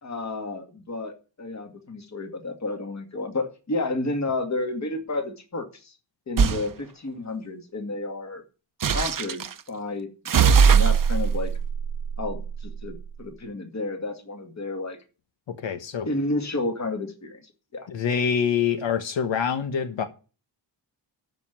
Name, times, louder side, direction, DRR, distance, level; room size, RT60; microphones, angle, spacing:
voice 1, 0.0-5.9 6.3-8.4 8.9-11.5 12.2-15.0 16.1-17.4 17.7-17.9, left 2 dB, 40° left, 2.3 m, -31 dB
sound 1, 6.4-6.7 8.8-9.5 10.3-12.9, right 6 dB, 50° right, 0.8 m, -21 dB
voice 2, 15.6-16.1 17.9-20.1, left 7 dB, 90° left, 1.5 m, -25 dB
13.0 x 5.5 x 7.5 m
wide cardioid pair, 150°, 43 cm